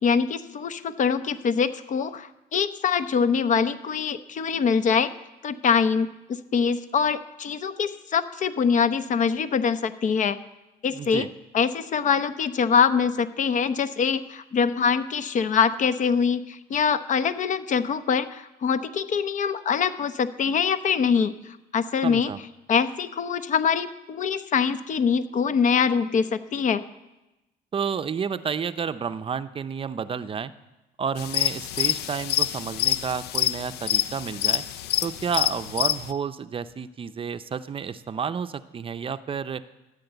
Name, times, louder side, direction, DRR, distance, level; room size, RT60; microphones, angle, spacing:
voice 1, 0.0-5.1 5.4-10.4 10.8-11.3 11.5-21.3 21.7-22.3 22.7-26.8, left 6 dB, 50° left, 12 dB, 0.9 m, -24 dB
voice 2, 10.9-11.3 22.0-22.4 27.7-30.5 31.0-34.6 35.0-39.6, right 6 dB, 35° right, 12 dB, 0.6 m, -30 dB
sound 1, 31.2-36.1, left 13 dB, 75° left, 0.6 m, -26 dB
14.5 x 9.9 x 8.0 m, 1.0 s
cardioid pair, 110°, 17 cm